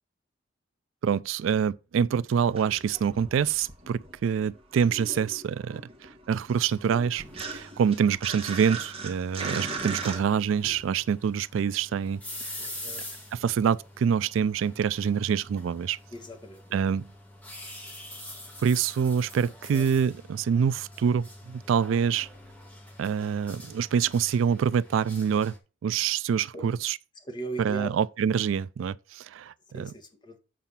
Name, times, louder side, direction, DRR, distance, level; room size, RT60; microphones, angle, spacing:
voice 1, 1.0-12.5 13.3-16.0 16.7-17.1 18.6-22.3 23.0-25.5 25.8-27.0 27.6-29.9, right 7 dB, 90° right, 0.3 m, -26 dB
sound 1, 2.4-4.3 4.6-10.2, right 4 dB, 30° right, 1.6 m, -38 dB
sound 2, 6.6-25.6, left 1 dB, 10° left, 1.9 m, -45 dB
voice 2, 12.6-13.0 16.1-16.6 19.7-19.8 26.5-26.6 27.3-27.9 29.7-30.4, right 2 dB, 25° left, 1.5 m, -39 dB
7.5 x 4.6 x 5.5 m
head